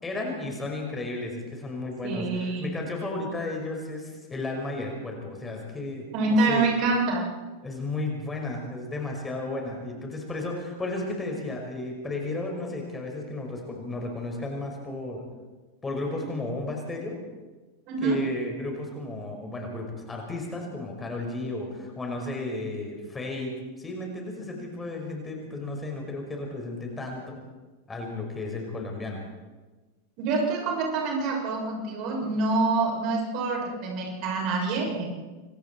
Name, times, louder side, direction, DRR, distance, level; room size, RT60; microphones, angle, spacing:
voice 1, 0.0-6.1 6.5-6.6 7.6-15.2 15.8-17.2 18.0-27.4 27.9-29.2, left 2 dB, 15° left, 1 dB, 5.5 m, -33 dB
voice 2, 2.0-2.7 6.1-7.2 17.9-18.2 30.2-35.0, right 3 dB, 40° right, -1 dB, 7.2 m, -26 dB
27.5 x 24.5 x 4.6 m, 1.2 s
figure-of-eight pair, 90°, 0 cm